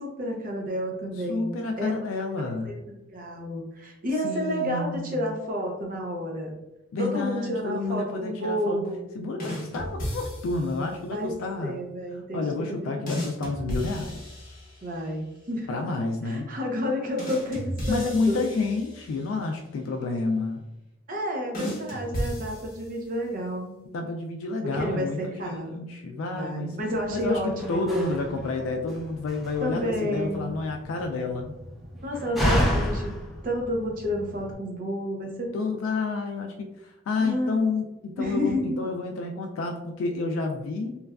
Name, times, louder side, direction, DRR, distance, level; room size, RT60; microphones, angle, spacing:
voice 1, 0.0-1.5 1.8-1.9 2.6-6.5 7.0-9.1 11.1-11.3 11.6-13.1 14.8-15.8 16.2-18.4 21.1-23.8 24.6-25.8 26.3-28.2 29.6-30.5 32.0-35.5 37.2-37.6 38.2-38.8, equal, 45° right, 0 dB, 0.6 m, -30 dB
voice 2, 1.3-2.7 4.2-5.3 6.9-8.9 9.1-11.8 12.1-14.2 15.7-16.5 17.9-20.6 23.9-26.8 27.1-31.6 35.5-41.0, left 3 dB, 90° left, 3 dB, 0.3 m, -30 dB
sound 1, 9.4-10.8 13.1-15.0 17.2-19.3 21.5-23.2, equal, 45° left, 0.8 m, -34 dB
Slam, 26.9-34.5, equal, ahead, 0.5 m, -31 dB
3.1 x 2.3 x 2.2 m, 0.93 s
head